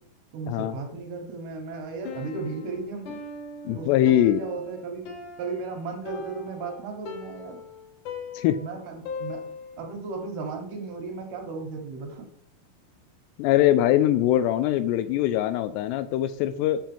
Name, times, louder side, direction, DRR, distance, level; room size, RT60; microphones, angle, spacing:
voice 1, 0.3-3.2 3.7-5.1 5.4-7.6 8.6-9.5 9.8-12.3, right 4 dB, 70° right, 3 dB, 2.9 m, -35 dB
Piano, 2.0-9.9, left 4 dB, 65° left, 2.2 m, -40 dB
voice 2, 3.7-4.4 8.3-8.6 13.4-16.8, left 12 dB, 85° left, 11 dB, 2.6 m, -22 dB
7.5 x 4.4 x 7.0 m, 0.65 s
omnidirectional pair, 5.1 m